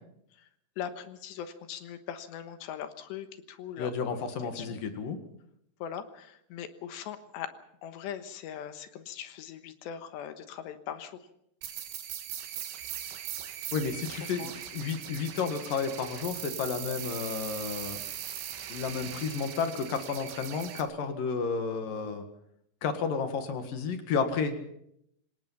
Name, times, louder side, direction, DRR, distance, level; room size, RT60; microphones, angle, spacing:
voice 1, 0.8-4.3 4.5-4.8 5.8-7.5 7.8-11.3 14.4-14.5, left 9 dB, 80° left, 9 dB, 3.4 m, -40 dB
voice 2, 3.8-5.2 13.7-18.0 18.7-22.3 22.8-24.6, left 5 dB, 60° left, 7 dB, 3.1 m, -32 dB
sound 1, 11.6-20.8, right 10 dB, 90° right, 4.1 m, -40 dB
26.0 x 19.0 x 5.7 m, 0.74 s
omnidirectional pair, 5.1 m